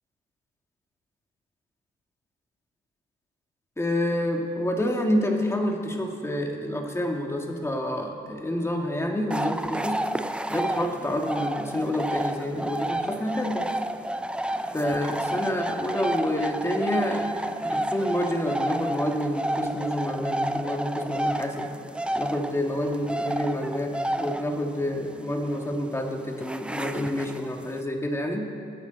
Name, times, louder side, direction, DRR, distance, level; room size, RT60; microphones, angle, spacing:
voice 1, 3.8-10.0 10.5-13.7 14.7-21.7 22.1-28.4, left 1 dB, 15° left, 1 dB, 2.2 m, -28 dB
sound 1, 9.3-27.8, right 1 dB, 5° right, 0.5 m, -31 dB
26.5 x 9.3 x 4.2 m, 2.3 s
cardioid pair, 90°, 20 cm